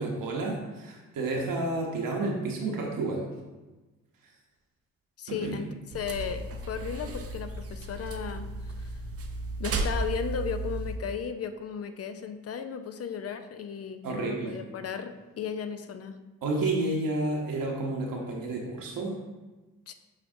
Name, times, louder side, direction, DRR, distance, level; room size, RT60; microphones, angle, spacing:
voice 1, 0.0-3.3 4.2-4.3 5.3-5.6 14.0-14.6 16.4-19.1, right 2 dB, 60° right, -1 dB, 0.9 m, -30 dB
voice 2, 5.2-5.7 5.9-8.9 9.6-16.2 19.9-20.0, left 7 dB, 40° left, 9 dB, 0.5 m, -35 dB
sound 1, 5.9-11.0, right 2 dB, 40° right, 0.6 m, -34 dB
7.3 x 2.5 x 2.6 m, 1.2 s
hypercardioid pair, 40°, 37 cm